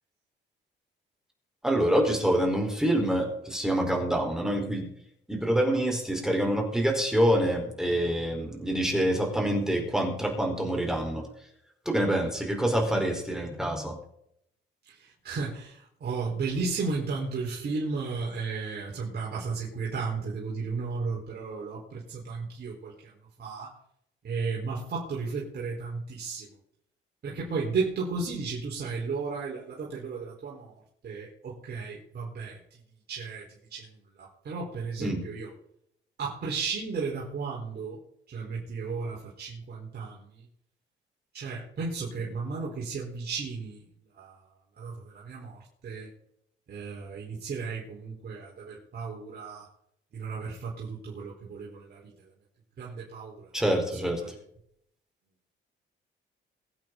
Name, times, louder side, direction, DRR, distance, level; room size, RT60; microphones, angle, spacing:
voice 1, 1.6-4.9 5.3-11.2 11.8-13.9 35.0-35.2 53.5-54.2, right 1 dB, 5° right, 1 dB, 4.6 m, -26 dB
voice 2, 14.9-23.1 23.4-23.7 24.2-26.5 27.2-32.8 33.1-35.5 36.2-38.0 38.3-40.4 41.3-43.8 44.2-44.5 44.8-46.1 46.7-49.7 50.1-52.1 52.8-53.5 53.9-54.4, right 4 dB, 55° right, -5 dB, 4.6 m, -34 dB
23.5 x 8.7 x 4.1 m, 0.72 s
cardioid pair, 90°, 20 cm